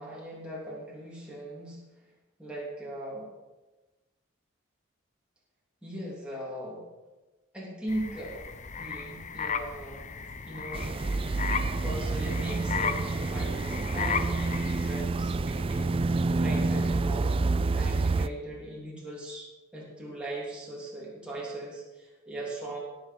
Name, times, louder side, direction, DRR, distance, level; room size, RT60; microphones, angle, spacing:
voice 1, 0.0-1.8 2.4-3.3 5.8-6.8 7.5-8.4 8.8-10.2 10.5-10.9 11.8-17.5 17.7-22.8, right 1 dB, 5° right, -6 dB, 3.2 m, -39 dB
sound 1, 7.9-15.0, left 6 dB, 35° left, 0.7 m, -35 dB
sound 2, 10.7-18.3, right 3 dB, 25° right, 0.3 m, -28 dB
17.0 x 7.2 x 5.4 m, 1.2 s
head